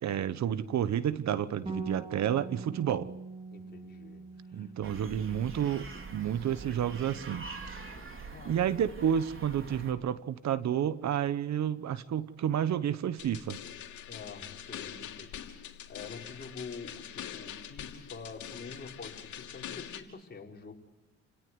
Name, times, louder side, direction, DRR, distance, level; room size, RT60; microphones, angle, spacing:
voice 1, 0.0-3.1 4.5-5.9 6.1-7.5 8.4-13.6, right 9 dB, 65° right, 15 dB, 1.1 m, -30 dB
Bass guitar, 1.7-7.9, right 3 dB, 20° right, 3.6 m, -44 dB
voice 2, 3.5-4.7 7.9-8.7 14.1-20.7, left 4 dB, 35° left, 0 dB, 5.4 m, -47 dB
sound 1, 4.8-9.9, right 4 dB, 45° right, 3.8 m, -45 dB
sound 2, 13.2-20.0, left 10 dB, 75° left, 3.0 m, -44 dB
29.5 x 18.0 x 9.6 m, 0.91 s
cardioid pair, 90°, 30 cm